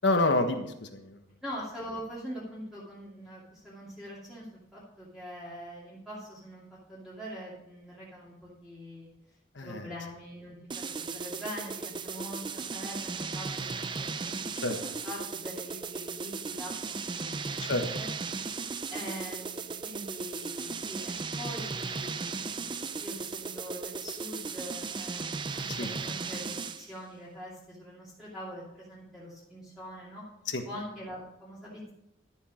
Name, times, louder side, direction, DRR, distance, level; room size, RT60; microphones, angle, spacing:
voice 1, 0.0-1.2 9.5-9.9 14.6-14.8 17.6-17.9 25.8-25.9 30.5-30.6, left 2 dB, 70° left, 6 dB, 1.3 m, -28 dB
voice 2, 1.4-6.6 6.9-9.1 9.6-18.1 18.9-30.2 30.6-31.9, equal, ahead, -9 dB, 2.6 m, -43 dB
sound 1, 10.7-26.9, right 4 dB, 25° right, 0.4 m, -36 dB
12.5 x 7.4 x 5.1 m, 0.84 s
head